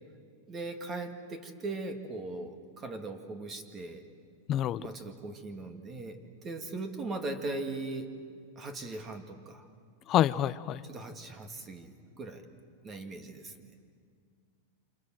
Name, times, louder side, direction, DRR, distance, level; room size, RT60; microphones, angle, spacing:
voice 1, 0.5-4.0 4.8-8.1 8.6-9.7 10.8-12.4 12.8-13.7, right 2 dB, 25° right, 7 dB, 2.2 m, -39 dB
voice 2, 4.5-4.9 10.1-10.8, left 12 dB, 30° left, 16 dB, 0.7 m, -27 dB
28.5 x 27.0 x 7.7 m, 2.2 s
supercardioid pair, 145°, 0 cm